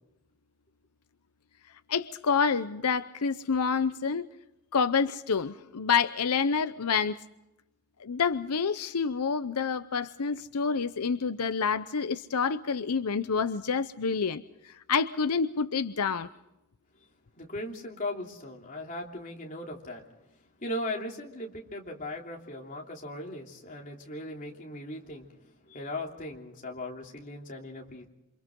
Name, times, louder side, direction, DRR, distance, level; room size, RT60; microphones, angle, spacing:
voice 1, 1.9-4.3 4.7-7.2 8.0-14.4 14.9-16.3, left 5 dB, 85° left, 11 dB, 0.7 m, -28 dB
voice 2, 17.4-20.0 20.6-25.3 25.7-28.1, left 1 dB, 35° left, 0 dB, 3.2 m, -38 dB
28.5 x 26.0 x 3.8 m, 0.89 s
head